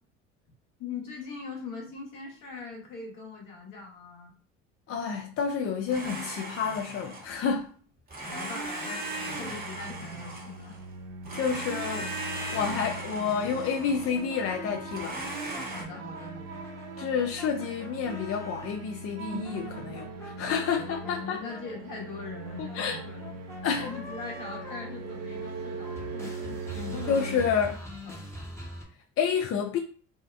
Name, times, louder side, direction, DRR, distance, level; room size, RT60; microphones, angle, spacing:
voice 1, 0.8-4.3 8.3-10.8 15.7-16.6 20.7-23.3 23.8-27.5 28.0-28.2, left 4 dB, 60° left, 1.1 m, -41 dB
voice 2, 4.9-7.7 11.3-12.1 12.5-15.2 17.0-21.4 22.6-23.0 23.6-23.9 27.1-27.8 29.2-29.8, left 6 dB, 40° left, 0.4 m, -29 dB
Domestic sounds home sounds, 5.9-7.5 8.1-10.8 11.2-14.3 14.9-15.8, right 2 dB, 25° right, 0.9 m, -37 dB
sound 1, 8.9-27.5, right 3 dB, 45° right, 0.5 m, -41 dB
sound 2, 13.6-18.8 19.3-25.6 25.8-28.8, left 1 dB, 5° left, 0.8 m, -45 dB
2.7 x 2.0 x 2.4 m
hypercardioid pair, 60°, 36 cm